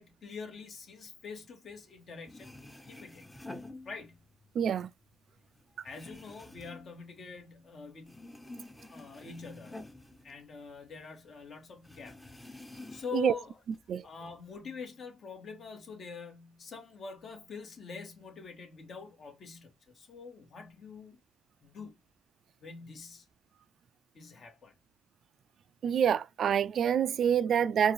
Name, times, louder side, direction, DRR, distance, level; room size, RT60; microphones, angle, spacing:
voice 1, 0.0-3.3 3.8-4.2 5.7-8.2 8.8-9.8 10.2-12.2 12.9-13.5 14.0-21.2 21.6-22.0 22.6-23.2 24.1-24.7, left 5 dB, 55° left, 1.7 m, -45 dB
sound 1, 2.0-2.1 2.2-4.5 4.8-7.7 8.0-11.0 11.3-11.4 11.8-13.3 13.7-14.5, left 2 dB, 10° left, 0.8 m, -49 dB
voice 2, 4.6-4.9 13.1-13.3 13.9-14.1 25.8-27.9, right 8 dB, 60° right, 0.3 m, -26 dB
4.5 x 2.6 x 3.1 m
cardioid pair, 90°, 0 cm